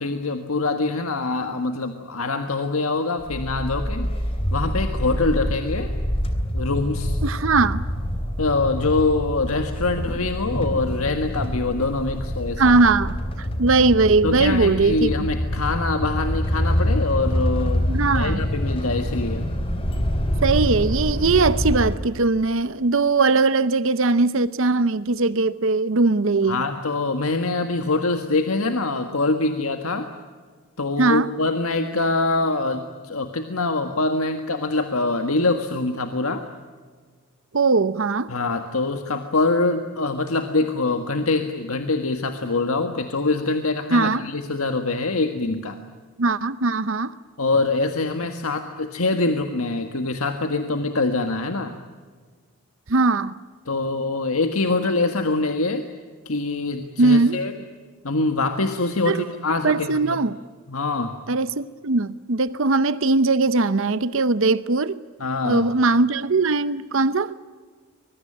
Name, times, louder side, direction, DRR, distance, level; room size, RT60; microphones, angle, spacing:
voice 1, 0.0-4.1 4.5-5.9 6.5-7.2 8.4-12.8 14.2-17.8 18.1-19.5 26.5-30.1 30.8-36.5 38.3-45.8 47.4-51.7 53.6-55.9 56.2-57.5 58.0-60.2 60.7-61.2 65.2-65.7, left 3 dB, 75° left, 1.6 m, -24 dB
sound 1, 3.2-22.0, equal, 25° left, 3.1 m, -26 dB
voice 2, 7.2-7.8 12.6-15.1 17.9-18.5 20.4-26.6 31.0-31.3 37.5-38.3 43.9-44.3 46.2-47.1 52.9-53.4 57.0-57.4 59.1-59.3 59.6-60.4 61.3-65.0 65.4-67.3, right 3 dB, 60° right, 0.7 m, -20 dB
24.5 x 22.0 x 8.7 m
head